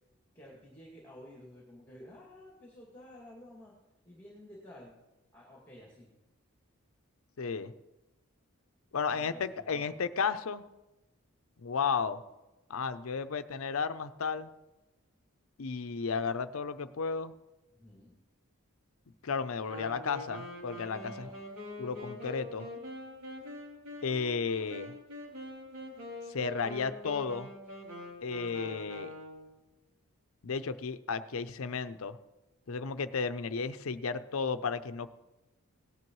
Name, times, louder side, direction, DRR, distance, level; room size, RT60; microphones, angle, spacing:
voice 1, 0.3-3.7 4.0-5.0 5.3-6.1 9.1-10.0 17.7-18.2 21.0-21.4, left 1 dB, 10° left, -3 dB, 2.2 m, -52 dB
voice 2, 7.4-7.7 8.9-10.6 11.6-12.2 12.7-14.5 15.6-17.3 19.2-21.3 21.8-22.7 24.0-24.9 26.3-27.5 28.2-29.1 30.4-32.2 32.7-35.1, left 5 dB, 75° left, 12 dB, 0.6 m, -33 dB
Wind instrument woodwind instrument, 19.7-29.6, left 1 dB, 75° right, 3.2 m, -44 dB
18.0 x 10.5 x 3.1 m, 1.0 s
head